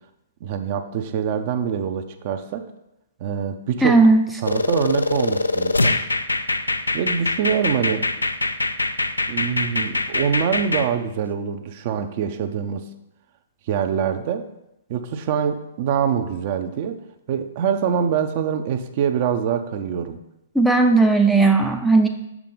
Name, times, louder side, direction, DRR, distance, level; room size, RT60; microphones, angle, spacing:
voice 1, 0.4-2.6 3.2-4.0 4.4-6.0 6.9-8.1 9.3-12.8 13.7-14.5 14.9-17.0 17.3-20.2, right 8 dB, 45° right, 8 dB, 0.6 m, -24 dB
voice 2, 3.8-4.2 20.6-22.1, right 3 dB, ahead, 3 dB, 0.5 m, -15 dB
sound 1, 4.4-10.9, left 2 dB, 90° left, 0.4 m, -23 dB
6.5 x 5.9 x 3.9 m, 0.87 s
figure-of-eight pair, 120°, 0 cm